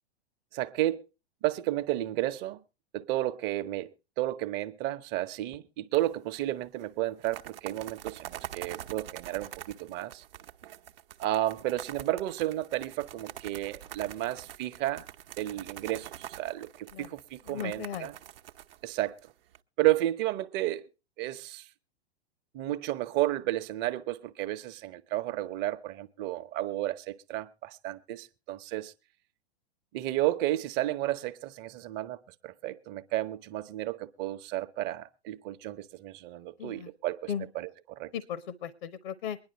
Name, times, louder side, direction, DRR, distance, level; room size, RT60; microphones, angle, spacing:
voice 1, 0.5-1.0 1.4-2.6 2.9-3.9 4.2-10.2 11.2-15.1 15.4-18.1 18.8-19.2 19.8-20.8 21.2-21.6 22.5-28.9 29.9-37.3 37.5-38.1, right 15 dB, 35° right, 0.9 m, -32 dB
sound 1, 5.9-6.4 6.6-6.7 7.1-19.6, right 12 dB, 60° right, 0.9 m, -45 dB
voice 2, 17.4-18.1 36.6-36.9 37.3-37.5 38.1-39.4, left 8 dB, 55° left, 0.9 m, -36 dB
23.5 x 10.5 x 3.0 m
figure-of-eight pair, 100°, 32 cm